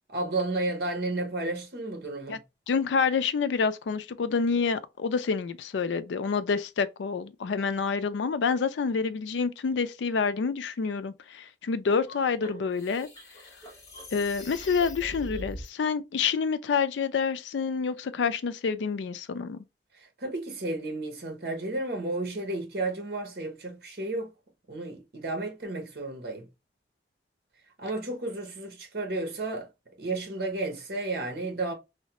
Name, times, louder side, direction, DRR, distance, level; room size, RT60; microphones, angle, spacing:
voice 1, 0.1-2.4 19.9-24.3 24.7-26.5 27.8-29.7 30.0-31.7, right 2 dB, 60° right, 0.8 m, -32 dB
voice 2, 2.7-13.1 14.1-19.6, left 5 dB, 90° left, 0.4 m, -28 dB
sound 1, 11.9-15.7, left 1 dB, 20° left, 0.9 m, -42 dB
3.1 x 2.1 x 2.8 m
head